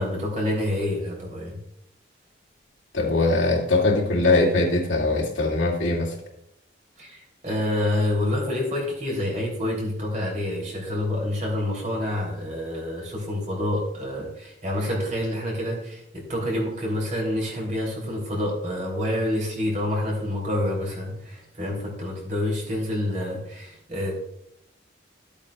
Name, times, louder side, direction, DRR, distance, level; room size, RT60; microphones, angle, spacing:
voice 1, 0.0-1.6 7.0-24.1, left 1 dB, 40° right, -1 dB, 3.5 m, -27 dB
voice 2, 2.9-6.2, left 2 dB, 75° left, -3 dB, 2.5 m, -21 dB
13.5 x 8.5 x 2.4 m, 0.76 s
head